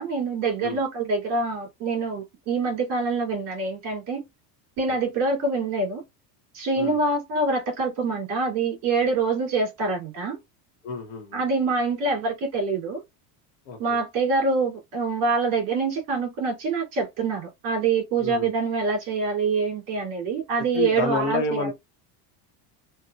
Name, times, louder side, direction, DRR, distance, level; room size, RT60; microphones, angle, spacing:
voice 1, 0.0-4.2 4.8-6.0 6.5-10.4 11.3-13.0 13.8-21.7, right 4 dB, 55° right, 2.3 m, -25 dB
voice 2, 10.8-11.4 13.7-14.0 18.2-18.5 20.7-21.7, left 4 dB, 55° left, 0.9 m, -29 dB
4.1 x 2.2 x 2.2 m
cardioid pair, 180°, 47 cm